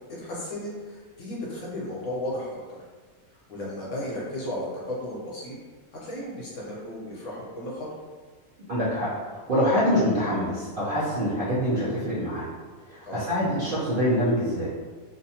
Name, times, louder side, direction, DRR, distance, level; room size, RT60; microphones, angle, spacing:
voice 1, 0.2-2.6 3.3-5.6 6.0-7.9 13.0-13.2, left 1 dB, 65° left, -5 dB, 1.1 m, -34 dB
voice 2, 8.7-12.5 12.8-14.7, equal, 55° right, -9 dB, 0.6 m, -25 dB
2.7 x 2.2 x 2.7 m, 1.4 s
omnidirectional pair, 1.5 m